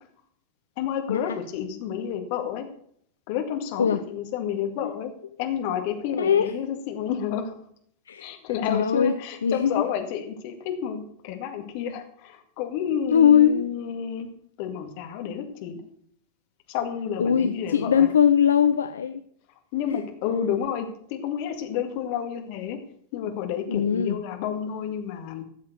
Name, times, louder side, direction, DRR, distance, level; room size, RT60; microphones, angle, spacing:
voice 1, 0.8-2.7 3.3-5.1 5.4-7.6 8.2-14.3 14.6-15.8 16.7-18.1 19.7-22.8 23.1-25.4, left 8 dB, 45° left, 5 dB, 2.1 m, -30 dB
voice 2, 6.2-6.5 8.1-8.3 8.7-9.7 13.1-13.7 17.2-19.2 19.9-20.0 23.7-24.2, left 8 dB, 70° left, 10 dB, 0.6 m, -21 dB
13.5 x 7.4 x 6.7 m, 0.65 s
figure-of-eight pair, 90°, 0 cm